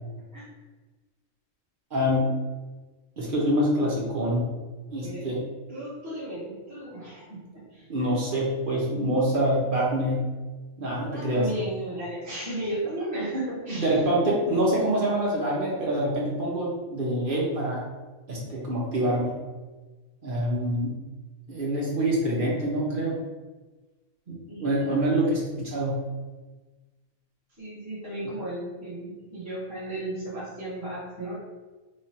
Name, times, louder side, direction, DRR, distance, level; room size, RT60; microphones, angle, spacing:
voice 1, 1.9-2.3 3.2-4.5 4.9-5.4 7.9-10.3 10.8-11.5 13.7-17.8 18.3-19.4 20.2-21.0 21.5-23.2 24.3-26.0, right 1 dB, 45° right, -4 dB, 0.8 m, -25 dB
voice 2, 5.7-7.9 11.1-14.0 24.5-25.2 27.6-31.4, right 1 dB, 10° right, -12 dB, 1.1 m, -35 dB
3.2 x 2.4 x 4.2 m, 1.2 s
omnidirectional pair, 1.5 m